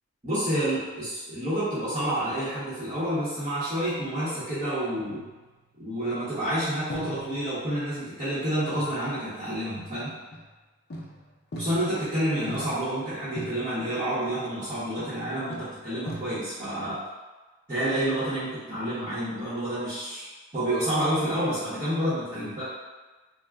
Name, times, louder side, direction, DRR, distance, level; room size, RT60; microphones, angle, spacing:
voice 1, 0.2-5.2 5.8-10.1 11.6-17.0 17.7-20.3 20.5-22.6, right 1 dB, 30° right, -14 dB, 0.8 m, -29 dB
sound 1, 5.0-5.8 6.9-8.1 8.7-9.1 10.0-10.5 10.9-12.1 12.5-13.0 13.4-13.9 14.7-15.2 15.5-16.7, right 1 dB, 50° left, 0.5 m, -40 dB
2.3 x 2.0 x 3.3 m, 1.2 s
head